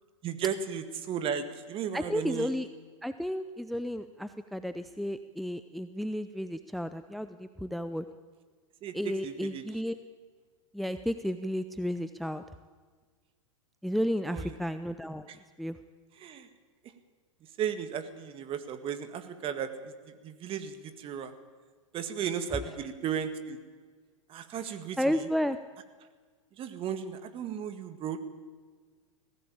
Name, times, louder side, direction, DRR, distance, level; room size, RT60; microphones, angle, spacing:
voice 1, 0.2-2.5 8.8-9.6 14.3-14.6 15.3-15.4 16.2-16.5 17.6-19.9 20.2-21.3 21.9-23.6 24.3-25.3 26.6-28.2, right 8 dB, 35° right, 10 dB, 2.0 m, -35 dB
voice 2, 1.9-2.7 3.0-8.0 8.9-9.9 10.7-12.4 13.8-15.3 15.6-15.8 25.0-25.6, equal, ahead, 11 dB, 0.6 m, -32 dB
19.0 x 16.0 x 8.7 m, 1.5 s
hypercardioid pair, 115°, 17 cm